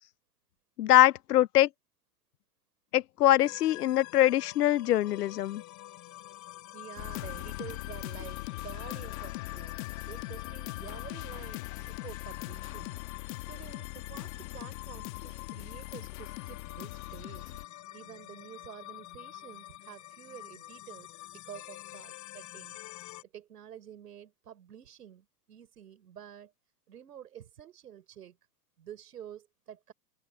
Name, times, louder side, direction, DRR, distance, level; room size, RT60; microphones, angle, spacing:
voice 1, 0.8-1.7 2.9-5.6, left 13 dB, 75° left, 0.7 m, -23 dB
sound 1, 3.4-23.2, left 16 dB, 35° left, 2.9 m, -47 dB
voice 2, 6.7-13.0 13.5-17.6 17.9-22.8 23.2-26.5 26.9-28.4 28.8-29.9, right 10 dB, 75° right, 5.3 m, -49 dB
sound 2, 7.0-17.6, left 21 dB, 55° left, 2.3 m, -41 dB
open air
hypercardioid pair, 105°, 47 cm